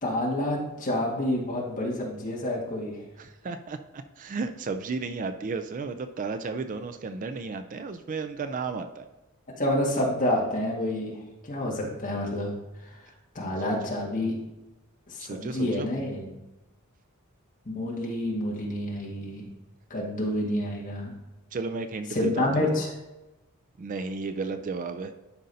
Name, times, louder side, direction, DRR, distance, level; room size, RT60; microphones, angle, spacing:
voice 1, 0.0-3.0 9.6-12.5 12.8-12.9 13.4-14.4 15.1-16.3 17.7-19.5 19.9-21.1 22.1-22.9, left 1 dB, 35° left, -3 dB, 1.8 m, -28 dB
voice 2, 3.2-9.1 13.6-13.7 15.2-15.9 21.5-22.8 23.8-25.1, right 4 dB, 35° right, 8 dB, 0.3 m, -33 dB
11.5 x 5.2 x 2.7 m, 1.0 s
head